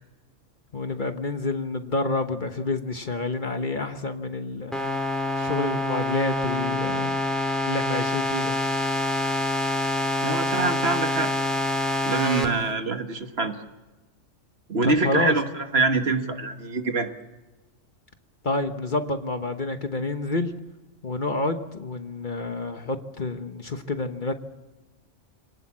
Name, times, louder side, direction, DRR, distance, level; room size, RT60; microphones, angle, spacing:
voice 1, 0.7-4.8 5.4-7.2 7.7-8.6 14.8-15.4 18.4-20.5 21.0-24.4, left 2 dB, 40° left, 7 dB, 1.3 m, -28 dB
sound 1, 4.7-12.5, left 1 dB, ahead, 3.3 m, -26 dB
voice 2, 10.2-11.3 12.0-13.6 14.7-17.1, right 3 dB, 55° right, 6 dB, 1.8 m, -25 dB
27.0 x 18.5 x 7.4 m, 1.1 s
omnidirectional pair, 1.3 m